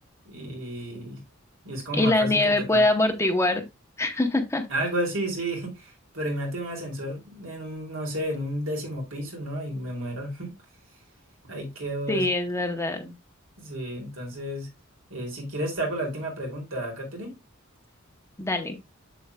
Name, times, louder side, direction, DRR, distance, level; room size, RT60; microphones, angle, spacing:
voice 1, 0.2-1.2 1.6-2.8 4.7-10.5 11.4-12.3 13.6-14.7 15.1-17.3, right 1 dB, 70° right, 2.8 m, -32 dB
voice 2, 1.9-3.6 4.0-4.6 12.1-13.1 18.4-18.7, left 2 dB, 15° left, 0.8 m, -23 dB
7.8 x 6.8 x 2.2 m
head